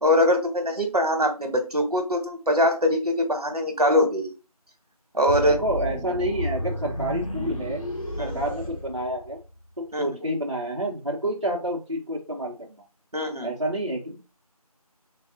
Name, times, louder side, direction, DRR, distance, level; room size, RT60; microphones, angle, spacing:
voice 1, 0.0-4.3 5.1-5.6 8.2-8.4 9.9-10.1 13.1-13.5, left 1 dB, 75° right, 5 dB, 1.1 m, -22 dB
sound 1, 5.3-9.5, equal, 60° left, 0.9 m, -32 dB
voice 2, 5.5-7.8 8.2-9.4 9.8-12.7 13.4-14.4, right 1 dB, 50° right, -3 dB, 0.8 m, -29 dB
3.5 x 2.3 x 3.5 m, 0.31 s
figure-of-eight pair, 180°, 20 cm